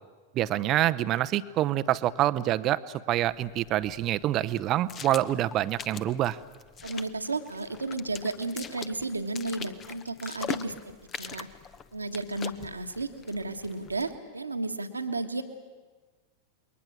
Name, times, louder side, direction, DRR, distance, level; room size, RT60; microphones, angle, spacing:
voice 1, 0.3-6.4, right 13 dB, 35° right, 14 dB, 0.8 m, -26 dB
sound 1, 3.1-14.2, left 7 dB, 25° left, 1.0 m, -42 dB
voice 2, 6.8-11.5 11.9-15.4, right 2 dB, 80° right, 7 dB, 1.6 m, -33 dB
28.5 x 22.0 x 7.5 m, 1.3 s
figure-of-eight pair, 90°, 0 cm